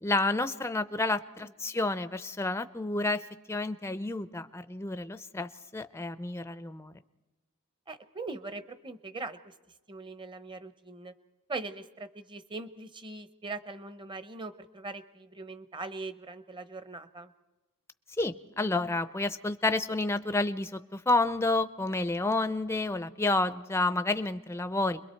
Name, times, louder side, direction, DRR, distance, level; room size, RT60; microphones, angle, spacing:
voice 1, 0.0-3.2 3.5-6.9 18.2-25.0, left 2 dB, 10° left, 11 dB, 0.6 m, -30 dB
voice 2, 7.9-9.5 9.9-11.1 11.5-17.3, right 3 dB, 20° right, 12 dB, 1.0 m, -41 dB
29.5 x 22.0 x 4.5 m, 1.1 s
head